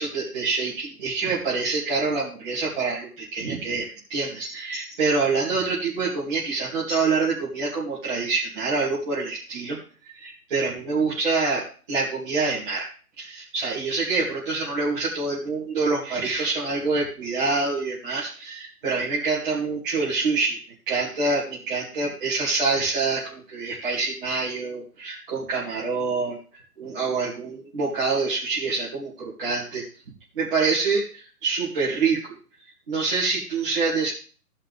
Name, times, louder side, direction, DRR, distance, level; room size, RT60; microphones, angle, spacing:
voice 1, 0.0-9.8 10.0-12.9 13.2-20.6 20.9-26.4 26.8-29.8 30.3-32.3 32.9-34.1, right 4 dB, 35° right, -7 dB, 2.4 m, -26 dB
15.5 x 5.8 x 3.4 m, 0.39 s
hypercardioid pair, 160°, 47 cm